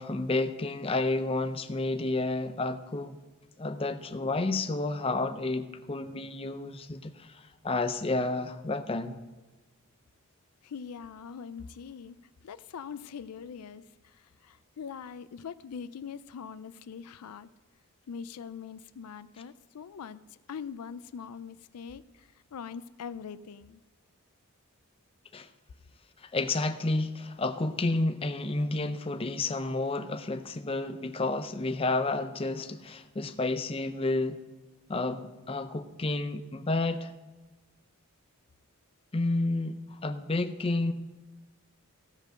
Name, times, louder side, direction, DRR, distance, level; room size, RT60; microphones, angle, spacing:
voice 1, 0.0-3.2 3.6-9.2 25.3-25.5 26.3-34.4 34.9-37.1 39.1-40.9, left 2 dB, 25° left, 9 dB, 0.5 m, -30 dB
voice 2, 10.6-12.2 12.4-17.5 18.1-20.2 20.5-23.8, left 6 dB, 90° left, 15 dB, 0.4 m, -42 dB
15.5 x 5.2 x 6.3 m, 1.2 s
head